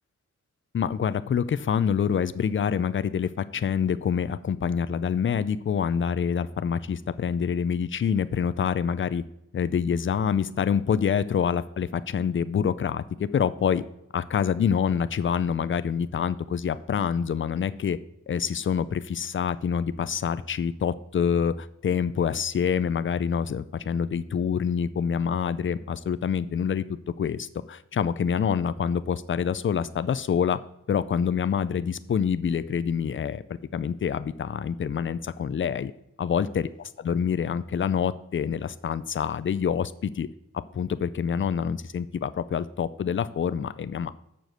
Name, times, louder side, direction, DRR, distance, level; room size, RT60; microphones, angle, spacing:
voice 1, 0.7-9.2 9.5-13.8 14.1-18.0 18.3-26.8 27.2-30.6 30.9-33.4 33.7-35.9 36.2-40.3 40.5-44.1, left 7 dB, 40° left, 14 dB, 0.5 m, -26 dB
7.2 x 6.0 x 6.5 m, 0.84 s
wide cardioid pair, 110°, 31 cm